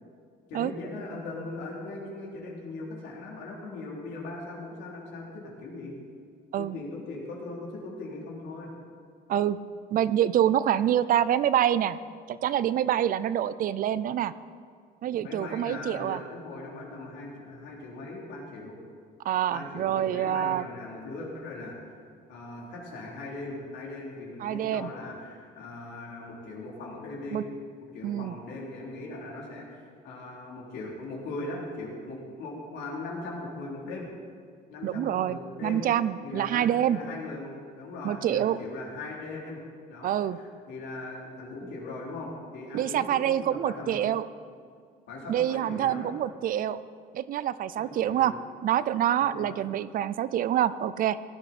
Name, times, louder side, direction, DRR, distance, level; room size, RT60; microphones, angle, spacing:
voice 1, 0.5-5.9 6.6-8.7 15.2-18.8 19.5-21.9 22.3-27.4 27.8-34.1 34.7-35.8 36.2-39.6 39.9-44.0 45.1-46.1 47.8-48.5 49.2-49.6, left 2 dB, 85° left, -3 dB, 3.4 m, -39 dB
voice 2, 9.9-12.0 12.3-14.3 15.0-16.2 19.2-20.6 24.4-24.9 27.3-27.4 28.0-28.3 34.8-37.0 38.0-38.6 40.0-40.4 42.7-44.2 45.3-46.8 47.1-48.3 48.6-51.2, right 11 dB, 55° right, 16 dB, 0.5 m, -26 dB
17.0 x 11.5 x 4.3 m, 2.2 s
cardioid pair, 110°, 17 cm